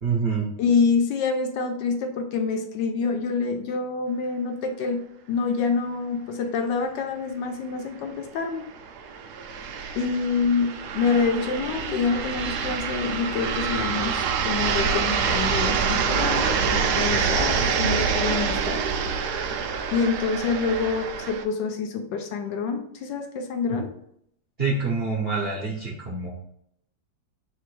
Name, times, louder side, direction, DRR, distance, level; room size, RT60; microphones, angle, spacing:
voice 1, 0.0-0.5 23.7-23.8 24.6-26.3, right 4 dB, 50° right, -4 dB, 0.7 m, -26 dB
voice 2, 0.6-5.0 5.3-8.6 10.0-18.8 19.9-23.9, left 5 dB, 75° left, 5 dB, 1.2 m, -26 dB
sound 1, 7.4-7.5 7.8-7.9 8.6-21.4, right 6 dB, 75° right, 0.9 m, -26 dB
4.5 x 2.6 x 4.6 m, 0.73 s
omnidirectional pair, 2.1 m